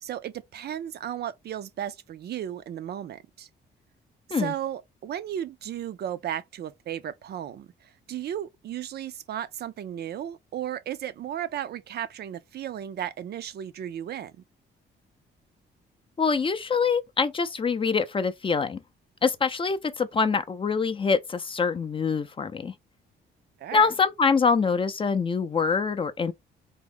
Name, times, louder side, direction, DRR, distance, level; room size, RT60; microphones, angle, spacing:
voice 1, 0.0-3.5 4.3-14.3 23.6-23.9, right 10 dB, 55° right, 0.4 m, -35 dB
voice 2, 16.2-18.8 19.2-22.7 23.7-26.3, left 5 dB, 25° left, 0.4 m, -25 dB
3.5 x 2.1 x 3.4 m
cardioid pair, 90°, 20 cm